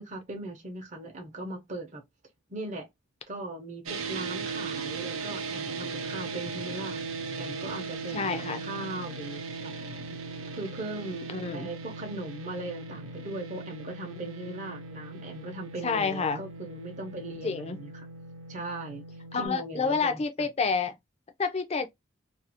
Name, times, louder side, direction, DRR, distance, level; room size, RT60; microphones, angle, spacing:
voice 1, 0.0-2.0 2.5-2.9 3.3-7.0 7.4-9.7 10.5-17.9 18.5-19.0 19.4-20.2, right 2 dB, 35° right, 0.6 m, -39 dB
sound 1, 3.9-19.5, right 4 dB, 80° right, 0.6 m, -38 dB
voice 2, 8.1-8.6 11.3-11.7 15.8-16.4 17.4-17.8 19.3-21.0 21.4-21.9, left 5 dB, 30° left, 0.4 m, -28 dB
2.4 x 2.4 x 2.8 m
head